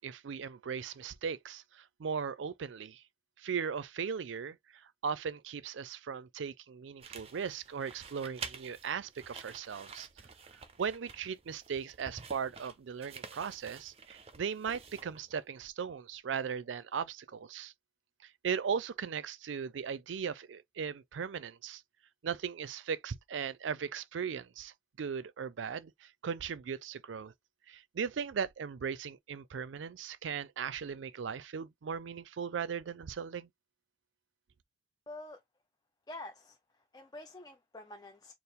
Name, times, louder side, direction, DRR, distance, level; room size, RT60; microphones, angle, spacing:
voice 1, 0.0-3.0 3.4-10.1 10.8-17.7 18.2-21.8 22.2-27.3 27.7-33.5, right 6 dB, 90° right, 0.4 m, -38 dB
sound 1, 7.0-15.4, right 5 dB, 30° right, 0.5 m, -49 dB
voice 2, 35.1-35.4 36.1-38.3, left 2 dB, 20° left, 0.4 m, -47 dB
4.5 x 2.0 x 3.4 m
head